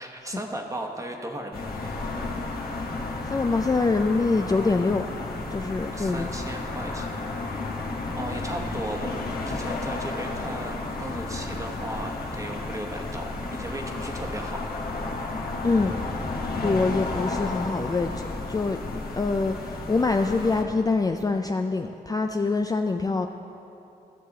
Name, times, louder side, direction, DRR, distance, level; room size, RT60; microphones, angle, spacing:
voice 1, 0.0-1.9 5.9-7.4 8.1-14.6, right 1 dB, 20° right, 2 dB, 1.1 m, -36 dB
sound 1, 1.5-20.6, left 3 dB, 65° left, 1.3 m, -32 dB
voice 2, 3.3-5.0 5.5-6.3 15.6-16.0 16.6-23.3, left 3 dB, 20° left, 5 dB, 0.3 m, -25 dB
13.5 x 6.6 x 3.9 m, 2.8 s
cardioid pair, 75°, 17 cm